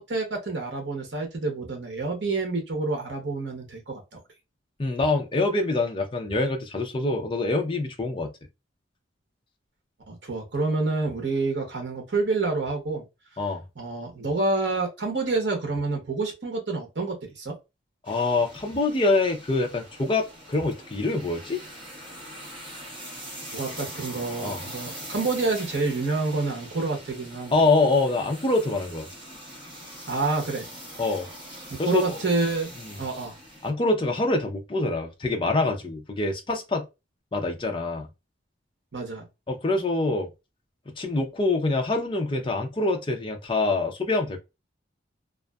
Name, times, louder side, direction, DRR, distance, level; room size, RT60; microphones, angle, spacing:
voice 1, 0.0-4.2 10.1-13.0 13.8-17.5 23.5-27.5 30.1-30.7 31.7-32.7 33.0-33.4 38.9-39.3, right 3 dB, 65° right, 0.8 m, -28 dB
voice 2, 4.8-8.3 13.4-13.6 18.1-21.6 24.4-24.6 27.5-29.1 31.0-31.3 31.8-32.2 32.8-32.9 33.6-36.9 37.3-38.1 39.5-40.3 41.0-44.4, left 2 dB, 25° left, 0.5 m, -25 dB
cars passing on wet road, 18.0-33.7, equal, 25° right, 1.1 m, -42 dB
2.5 x 2.4 x 2.2 m
head